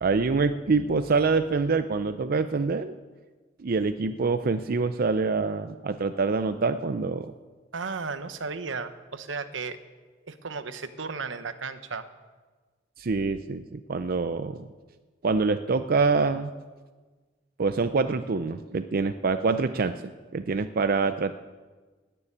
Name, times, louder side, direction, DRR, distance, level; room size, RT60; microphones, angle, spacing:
voice 1, 0.0-2.9 3.6-7.3 13.0-14.7 15.2-16.5 17.6-21.3, right 4 dB, 50° right, 10 dB, 0.5 m, -25 dB
voice 2, 7.7-9.8 10.2-12.1, right 4 dB, 80° right, 10 dB, 1.0 m, -34 dB
17.0 x 7.0 x 9.9 m, 1.3 s
head